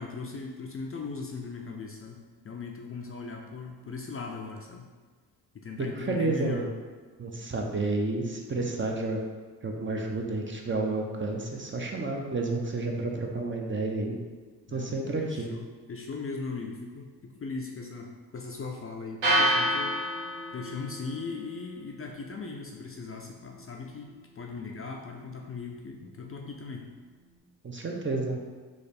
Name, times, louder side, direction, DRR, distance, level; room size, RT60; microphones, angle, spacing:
voice 1, 0.0-4.9 5.5-6.6 14.7-20.1 20.5-24.1 24.4-26.8, left 4 dB, 35° left, 1 dB, 0.4 m, -39 dB
voice 2, 5.8-6.7 7.2-9.2 9.6-14.2 14.7-15.5 27.6-28.4, right 2 dB, 30° right, 1 dB, 0.6 m, -30 dB
sound 1, 19.2-27.4, equal, 85° right, 1.4 m, -33 dB
3.2 x 2.5 x 4.1 m, 1.4 s
supercardioid pair, 55°, 42 cm